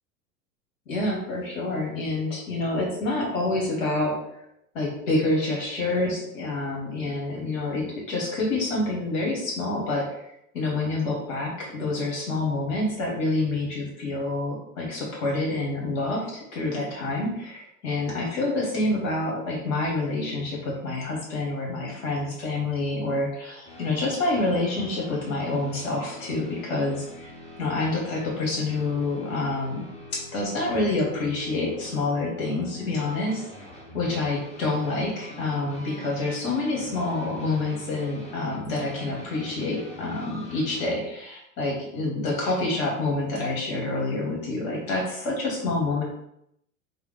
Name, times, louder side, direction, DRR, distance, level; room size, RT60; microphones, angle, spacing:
voice 1, 0.9-4.1 4.7-27.3 27.6-29.8 30.1-33.4 33.9-46.0, left 2 dB, 70° left, -2 dB, 1.4 m, -27 dB
sound 1, 23.6-41.0, left 1 dB, 15° left, 1.0 m, -44 dB
3.4 x 2.2 x 3.3 m, 0.77 s
hypercardioid pair, 80°, 41 cm